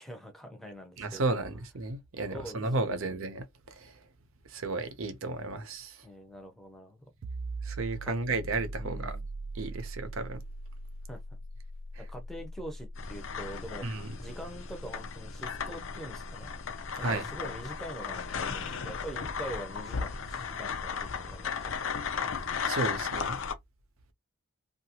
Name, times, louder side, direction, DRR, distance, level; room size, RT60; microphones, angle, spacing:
voice 1, 0.0-1.4 2.3-3.0 6.0-7.1 8.8-9.3 11.1-11.2 12.0-13.9 14.2-16.5 17.0-22.3, right 1 dB, ahead, 0.6 m, -44 dB
voice 2, 1.0-4.0 4.5-6.0 7.6-9.2 9.5-10.4 13.8-14.2 17.0-17.2 22.7-23.4, right 3 dB, 80° right, 0.7 m, -33 dB
sound 1, 7.2-18.6, right 1 dB, 55° right, 0.3 m, -42 dB
sound 2, 13.0-23.5, left 6 dB, 70° left, 0.6 m, -36 dB
2.9 x 2.5 x 2.8 m
head